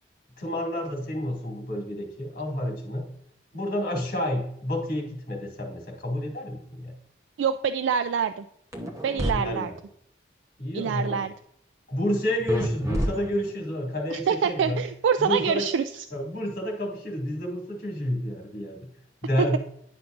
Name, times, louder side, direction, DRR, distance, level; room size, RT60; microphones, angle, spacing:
voice 1, 0.4-3.0 3.5-6.9 9.3-9.8 10.6-11.2 11.9-14.8 15.2-15.6 16.1-18.8 19.2-19.6, left 1 dB, 45° left, 0 dB, 2.2 m, -30 dB
voice 2, 7.4-8.5 9.0-9.7 10.7-11.3 14.1-16.0, right 7 dB, 85° right, 10 dB, 0.3 m, -25 dB
sound 1, 8.7-9.3 12.5-13.7, equal, 15° right, 0.8 m, -29 dB
9.7 x 5.9 x 2.5 m, 0.71 s
head